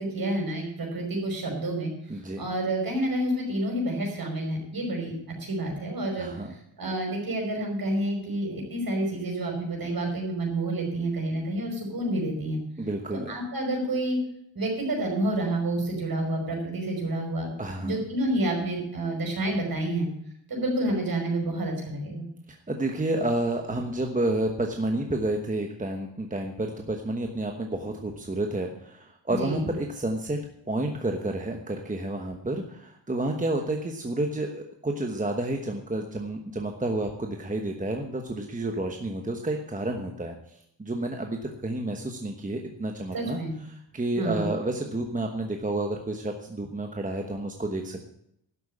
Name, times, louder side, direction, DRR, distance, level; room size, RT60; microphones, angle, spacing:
voice 1, 0.0-6.3 6.8-12.6 13.3-14.2 14.5-17.5 17.8-20.1 20.5-22.3 29.3-29.7 43.1-43.5 44.2-44.5, right 1 dB, 50° right, 0 dB, 5.4 m, -29 dB
voice 2, 2.1-2.4 6.2-6.5 12.8-13.3 17.6-18.0 22.5-43.4 43.7-48.0, right 2 dB, 15° right, 3 dB, 1.2 m, -30 dB
12.0 x 7.9 x 8.7 m, 0.74 s
wide cardioid pair, 130°, 45 cm